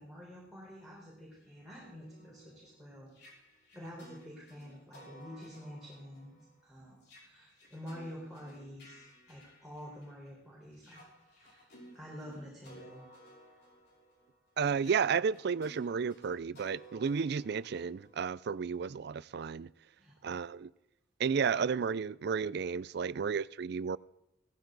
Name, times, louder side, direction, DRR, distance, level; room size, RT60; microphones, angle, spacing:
voice 1, 0.0-3.1 3.7-13.0 20.0-20.2, equal, ahead, 4.2 m, -48 dB
sound 1, 1.4-10.3 10.7-18.5, equal, 65° left, 5.6 m, -57 dB
voice 2, 14.6-19.7 20.2-20.7 21.2-24.0, right 6 dB, 65° right, 0.4 m, -32 dB
17.0 x 15.0 x 4.0 m
head